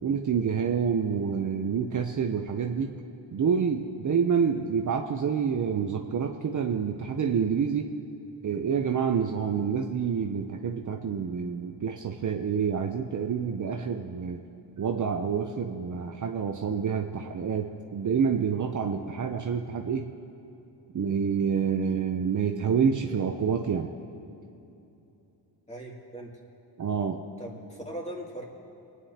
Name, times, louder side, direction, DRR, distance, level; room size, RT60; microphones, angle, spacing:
voice 1, 0.0-2.9 3.3-7.9 8.4-14.4 14.8-20.1 20.9-23.9 26.8-27.2, right 6 dB, 40° right, 4 dB, 0.7 m, -28 dB
voice 2, 25.7-26.3 27.4-28.4, right 1 dB, 15° left, -3 dB, 2.6 m, -39 dB
25.0 x 9.4 x 2.9 m, 2.9 s
cardioid pair, 70°, 46 cm